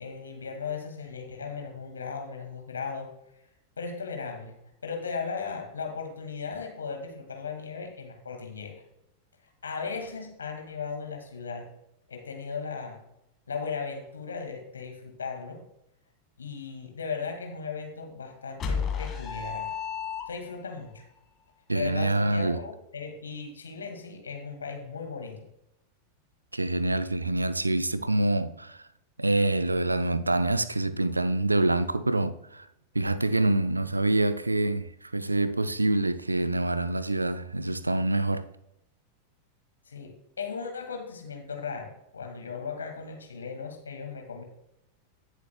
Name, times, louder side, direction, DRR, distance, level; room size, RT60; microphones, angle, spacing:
voice 1, 0.0-3.1 3.8-4.5 4.8-8.8 9.6-11.7 12.1-13.0 13.5-15.7 16.4-19.7 20.3-21.0 21.7-25.5 39.9-44.4, left 5 dB, 70° left, 1.9 m, -37 dB
sound 1, 18.6-20.7, left 6 dB, 25° left, 1.8 m, -32 dB
voice 2, 21.7-22.6 26.5-28.8 29.2-32.7 32.9-38.5, right 2 dB, 80° right, 0.5 m, -26 dB
17.0 x 7.1 x 2.2 m
figure-of-eight pair, 90°, 0 cm